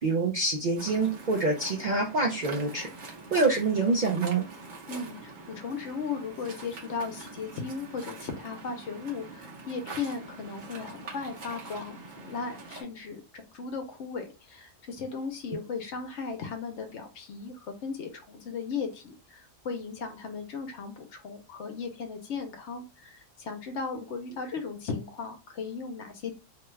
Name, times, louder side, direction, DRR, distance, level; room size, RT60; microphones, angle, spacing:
voice 1, 0.0-2.9 3.3-4.4, right 3 dB, 60° right, 0 dB, 0.5 m, -26 dB
Waves surf, 0.8-12.8, right 3 dB, 45° right, 0.9 m, -44 dB
voice 2, 4.9-26.3, left 5 dB, 70° left, 6 dB, 0.9 m, -36 dB
2.8 x 2.3 x 3.1 m, 0.29 s
omnidirectional pair, 1.3 m